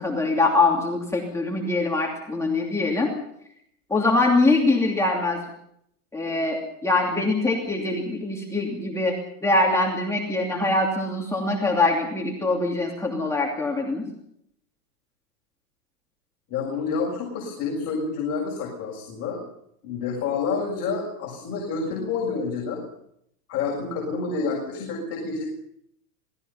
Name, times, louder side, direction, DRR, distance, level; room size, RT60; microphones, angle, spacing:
voice 1, 0.0-3.1 3.9-5.4 6.1-9.1 9.4-14.0, left 2 dB, 5° left, -2 dB, 2.8 m, -23 dB
voice 2, 16.5-19.4 19.8-22.8 23.5-25.5, left 4 dB, 30° left, -3 dB, 7.1 m, -28 dB
27.0 x 20.0 x 5.7 m, 0.74 s
supercardioid pair, 140°, 46 cm